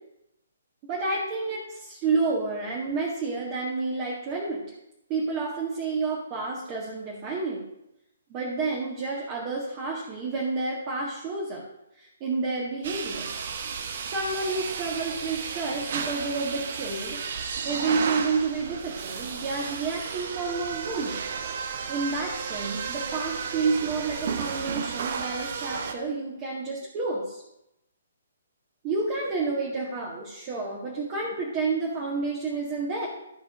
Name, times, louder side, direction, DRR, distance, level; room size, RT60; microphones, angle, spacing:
voice 1, 0.9-4.6 5.1-7.6 8.3-11.6 12.0-13.3 14.1-17.2 17.6-21.2 21.9-27.4 28.8-33.1, right 3 dB, 30° right, -4 dB, 1.8 m, -30 dB
sound 1, 12.8-25.9, right 6 dB, 45° right, 1.0 m, -33 dB
13.0 x 4.5 x 5.3 m, 0.84 s
figure-of-eight pair, 130°, 0 cm